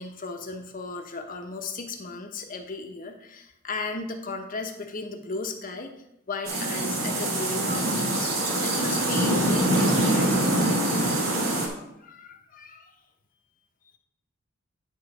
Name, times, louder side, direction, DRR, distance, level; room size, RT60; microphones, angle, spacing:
voice 1, 0.0-6.0 6.3-10.3 11.5-12.9, left 3 dB, 40° left, 4 dB, 0.9 m, -36 dB
sound 1, 6.4-11.7, right 1 dB, 75° right, 2.0 m, -24 dB
10.5 x 3.9 x 5.3 m, 0.82 s
head